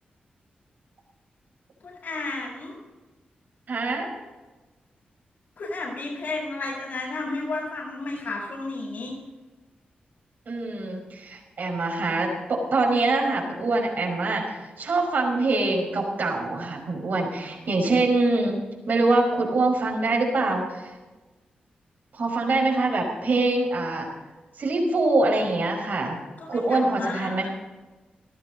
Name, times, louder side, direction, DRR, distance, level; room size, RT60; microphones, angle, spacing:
voice 1, 1.8-2.7 5.6-9.1 26.4-27.5, left 3 dB, 75° left, -7 dB, 6.5 m, -32 dB
voice 2, 3.7-4.1 10.5-20.9 22.1-24.1 24.6-26.2 26.5-27.5, right 2 dB, 65° right, 1 dB, 5.4 m, -24 dB
18.5 x 14.5 x 4.1 m, 1.2 s
wide cardioid pair, 95°, 3 cm